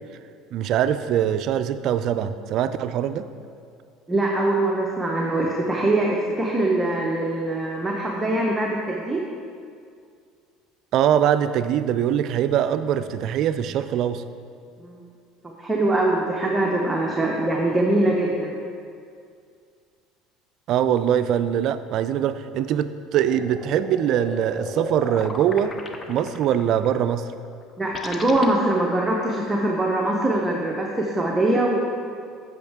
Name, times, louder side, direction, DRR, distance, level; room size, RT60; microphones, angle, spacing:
voice 1, 0.5-3.3 10.9-14.2 20.7-25.8 26.1-27.3, right 9 dB, 60° right, 12 dB, 0.3 m, -22 dB
voice 2, 4.1-9.2 14.8-15.0 15.6-18.5 27.8-31.8, right 2 dB, 15° right, -1 dB, 0.8 m, -23 dB
sound 1, 23.3-28.5, left 2 dB, 25° left, 0.7 m, -35 dB
8.4 x 6.3 x 3.5 m, 2.3 s
supercardioid pair, 100°, 0 cm